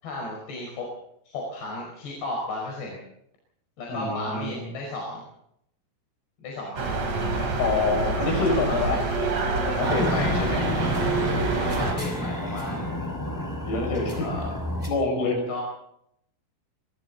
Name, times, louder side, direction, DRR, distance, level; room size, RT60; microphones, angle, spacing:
voice 1, 0.0-0.9 1.3-3.0 3.8-5.2 6.4-6.9 7.3-7.6 8.4-9.1 10.1-10.3 11.8-12.9 14.1-14.5 15.5-15.6, left 2 dB, 55° left, -1 dB, 7.1 m, -34 dB
voice 2, 3.9-4.6 7.6-9.0 9.7-10.7 11.7-11.8 13.7-14.3 14.9-15.5, left 3 dB, 90° left, 3 dB, 9.1 m, -26 dB
sound 1, 6.8-11.9, right 3 dB, 40° right, 4.3 m, -26 dB
sound 2, 9.8-14.9, left 1 dB, 5° left, 5.2 m, -30 dB
26.0 x 25.0 x 4.2 m, 0.76 s
omnidirectional pair, 5.9 m